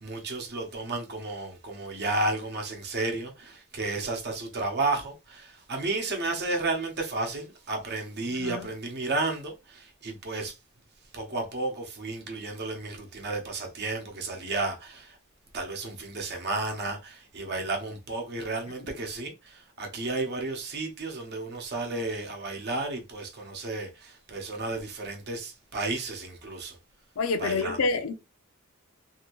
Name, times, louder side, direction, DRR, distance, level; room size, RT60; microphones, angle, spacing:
voice 1, 0.0-10.6 11.1-15.2 15.5-26.8 27.4-27.8, right 2 dB, 50° right, 0.8 m, -32 dB
voice 2, 8.3-8.7 27.2-28.1, left 4 dB, 70° left, 0.5 m, -28 dB
2.8 x 2.6 x 2.9 m
head